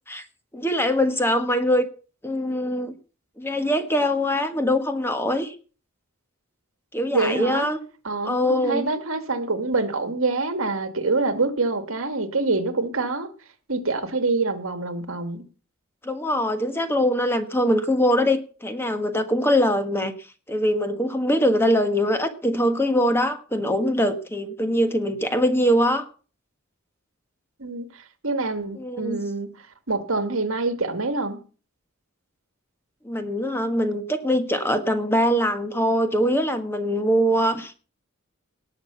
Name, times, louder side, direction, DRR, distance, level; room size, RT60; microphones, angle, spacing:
voice 1, 0.5-1.9 2.2-2.9 3.4-5.5 6.9-7.8 8.2-8.9 16.0-20.1 20.5-26.1 28.8-29.2 33.0-37.8, equal, 10° left, 8 dB, 1.4 m, -22 dB
voice 2, 7.1-7.7 8.0-13.3 13.7-15.4 27.6-31.4, right 3 dB, 70° right, 9 dB, 1.9 m, -26 dB
19.0 x 6.4 x 7.0 m, 0.38 s
head